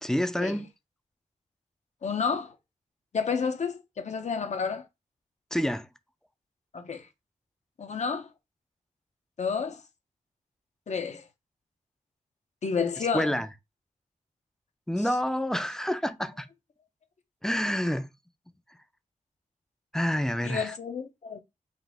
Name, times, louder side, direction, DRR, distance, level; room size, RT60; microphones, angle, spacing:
voice 1, 0.0-0.7 5.5-5.9 13.1-13.5 14.9-16.5 17.4-18.1 19.9-20.7, equal, 5° left, 0.4 m, -28 dB
voice 2, 2.0-2.6 3.1-4.9 6.7-7.1 7.8-8.3 9.4-9.8 10.9-11.2 12.6-13.4 20.4-21.4, left 5 dB, 60° left, 0.7 m, -30 dB
4.0 x 2.5 x 3.6 m
wide cardioid pair, 110°, 13 cm